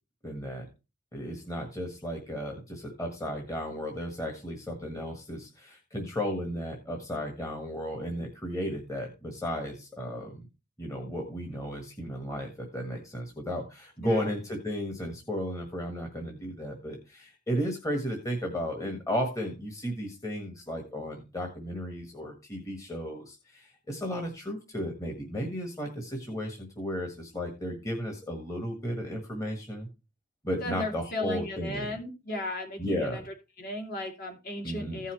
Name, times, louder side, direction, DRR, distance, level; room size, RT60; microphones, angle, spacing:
voice 1, 0.2-0.7 1.1-10.5 10.8-29.9 30.4-32.0 32.8-33.3 34.6-35.0, equal, 15° left, 1 dB, 1.6 m, -34 dB
voice 2, 14.0-14.3 30.6-33.2 33.6-35.1, left 1 dB, 45° left, 3 dB, 2.5 m, -35 dB
15.5 x 5.6 x 3.1 m, 0.28 s
head